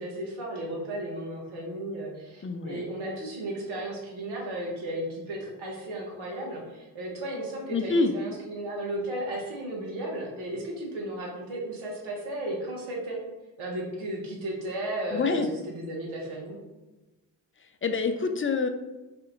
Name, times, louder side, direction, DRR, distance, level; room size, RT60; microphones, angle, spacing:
voice 1, 0.0-13.2 13.6-16.6, right 1 dB, 75° right, -3 dB, 1.5 m, -34 dB
voice 2, 2.4-2.8 7.7-8.1 15.1-15.5 17.8-18.7, left 4 dB, 25° left, 8 dB, 0.5 m, -26 dB
4.2 x 2.7 x 3.9 m, 1.1 s
hypercardioid pair, 40°, 48 cm